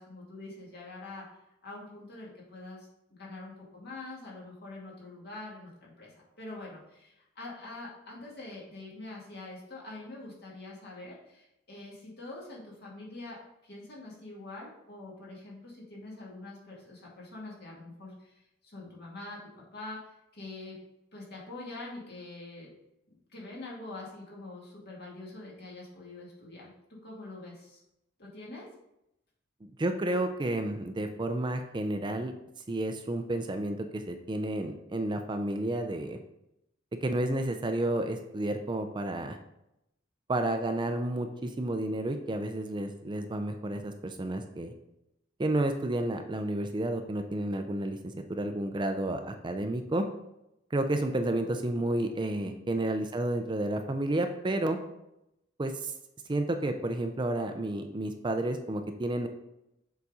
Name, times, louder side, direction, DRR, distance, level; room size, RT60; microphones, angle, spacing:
voice 1, 0.0-13.4 13.6-19.4 19.7-20.0 20.3-20.8 21.1-22.7 23.3-26.7 27.0-27.8 28.2-28.7 52.3-52.7, left 2 dB, 55° left, -4 dB, 2.1 m, -45 dB
voice 2, 29.6-32.3 32.7-36.2 37.0-39.4 40.3-44.7 45.4-48.0 48.3-50.0 50.7-54.8 55.6-55.9 56.3-59.3, right 1 dB, 25° right, 6 dB, 0.4 m, -31 dB
7.0 x 4.1 x 4.8 m, 0.85 s
head